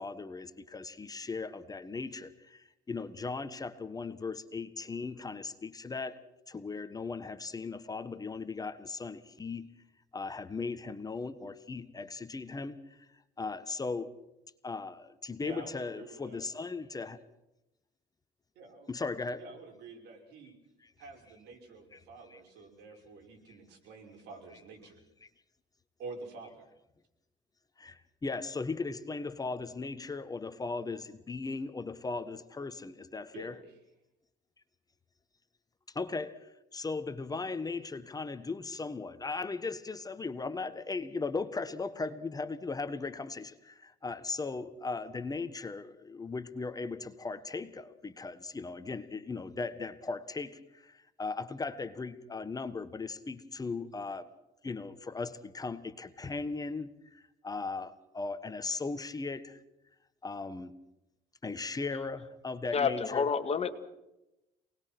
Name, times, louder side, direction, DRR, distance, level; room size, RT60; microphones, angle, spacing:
voice 1, 0.0-6.2 6.5-9.7 10.1-13.1 13.4-14.1 14.6-17.2 18.9-19.5 20.8-21.1 21.9-22.4 23.5-23.6 24.5-24.6 25.2-25.3 27.8-33.6 35.9-54.3 54.6-59.6 60.2-60.7 61.4-63.3, left 4 dB, 20° left, 11 dB, 1.4 m, -38 dB
voice 2, 15.4-16.4 18.6-18.9 19.4-20.5 21.0-25.0 26.0-26.7 33.3-33.8, right 4 dB, 85° right, 2 dB, 5.8 m, -48 dB
voice 3, 62.7-63.7, left 6 dB, 40° left, 9 dB, 2.0 m, -28 dB
28.0 x 20.0 x 6.1 m, 0.92 s
cardioid pair, 110°, 17 cm